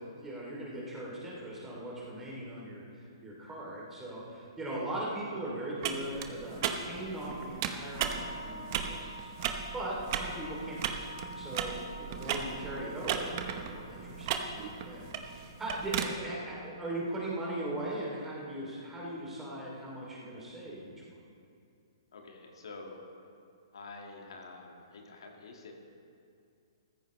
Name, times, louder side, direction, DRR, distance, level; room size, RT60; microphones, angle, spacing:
voice 1, 0.0-13.3 13.6-20.9, right 1 dB, 10° right, -5 dB, 2.9 m, -39 dB
sound 1, 5.8-16.1, right 8 dB, 40° right, 0.9 m, -36 dB
sound 2, 7.9-18.5, equal, 30° left, 1.9 m, -50 dB
voice 2, 22.1-23.0 23.7-25.7, left 3 dB, 75° left, 1 dB, 1.9 m, -47 dB
14.5 x 14.5 x 3.2 m, 2.4 s
hypercardioid pair, 150°, 3 cm